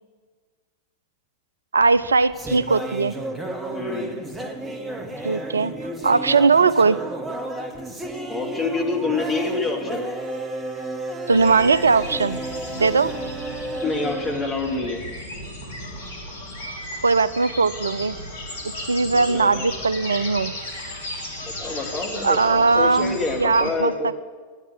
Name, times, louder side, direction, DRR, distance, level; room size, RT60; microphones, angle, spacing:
voice 1, 1.7-3.2 5.2-5.7 6.0-7.0 11.3-12.4 12.8-13.1 17.0-18.2 18.9-20.5 22.2-24.2, right 4 dB, 75° right, 17 dB, 0.4 m, -19 dB
sound 1, 1.8-15.3, right 1 dB, 15° right, 1.5 m, -32 dB
voice 2, 3.7-4.2 8.3-10.0 13.8-15.0 19.1-19.7 21.4-24.1, left 3 dB, 20° left, 0 dB, 2.6 m, -27 dB
sound 2, 11.3-23.7, left 1 dB, 65° left, 2.4 m, -35 dB
10.5 x 9.1 x 10.0 m, 1.5 s
figure-of-eight pair, 90°, 0 cm